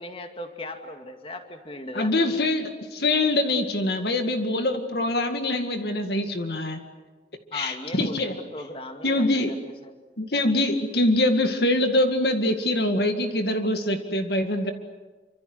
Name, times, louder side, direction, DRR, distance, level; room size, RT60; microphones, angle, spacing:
voice 1, 0.0-2.1 7.5-10.0, left 1 dB, 30° left, 5 dB, 2.3 m, -38 dB
voice 2, 1.9-6.8 7.5-8.3 9.0-9.5 10.2-14.7, left 1 dB, 60° left, 6 dB, 2.1 m, -24 dB
28.5 x 26.0 x 8.0 m, 1.3 s
head